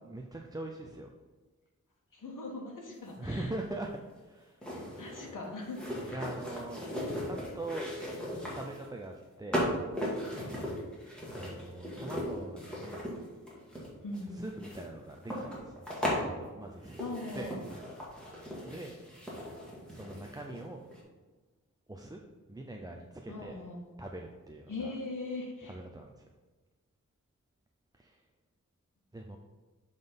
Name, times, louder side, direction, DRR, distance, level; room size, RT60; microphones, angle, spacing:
voice 1, 0.1-1.1 3.2-4.6 6.1-6.9 7.2-7.9 8.5-9.6 11.4-13.1 14.3-17.8 18.2-19.0 19.9-20.8 21.9-22.2 22.5-23.6 24.0-24.9 25.6-26.2 27.9-28.2 29.1-29.4, right 2 dB, 10° right, 1 dB, 0.5 m, -42 dB
voice 2, 2.1-3.5 4.7-6.2 14.0-14.4 17.0-17.6 23.3-23.8 24.7-25.7, left 2 dB, 90° left, -2 dB, 1.4 m, -40 dB
sound 1, 3.1-3.2 4.6-8.9 9.5-16.2 16.8-20.6 20.9-21.0, equal, 5° left, 2.2 m, -37 dB
7.4 x 4.0 x 5.2 m, 1.3 s
wide cardioid pair, 115°, 31 cm